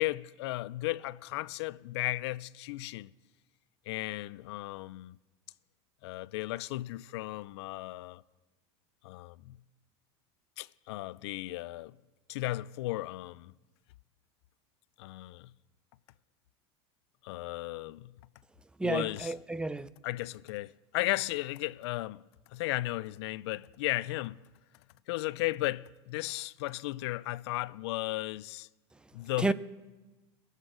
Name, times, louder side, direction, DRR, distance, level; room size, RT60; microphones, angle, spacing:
voice 1, 0.0-3.1 3.9-5.2 6.0-8.2 9.0-9.6 10.6-12.0 12.3-13.5 15.0-15.5 17.2-18.1 18.8-19.3 20.0-22.2 22.5-24.4 25.1-28.7 29.1-29.5, left 18 dB, 80° left, 0.4 m, -35 dB
voice 2, 18.8-19.9 29.4-29.5, right 2 dB, 5° right, 0.3 m, -31 dB
21.0 x 8.0 x 3.8 m
supercardioid pair, 135°, 14 cm